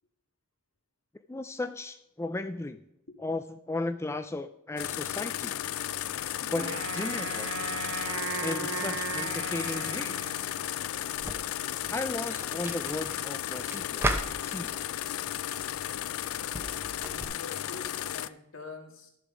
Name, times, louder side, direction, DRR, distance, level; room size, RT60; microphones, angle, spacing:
voice 1, 1.3-2.8 3.2-5.5 6.4-7.5 8.4-10.2 11.9-14.0 14.4-14.7, left 2 dB, 10° left, 9 dB, 0.3 m, -35 dB
sound 1, 4.8-18.3, left 12 dB, 85° left, 0.4 m, -34 dB
Wind instrument woodwind instrument, 6.5-10.9, right 5 dB, 80° right, 1.3 m, -37 dB
sound 2, 11.2-17.2, right 1 dB, 10° right, 0.8 m, -37 dB
voice 2, 17.0-19.1, left 3 dB, 70° left, 3 dB, 2.0 m, -46 dB
12.5 x 6.9 x 5.0 m, 0.84 s
head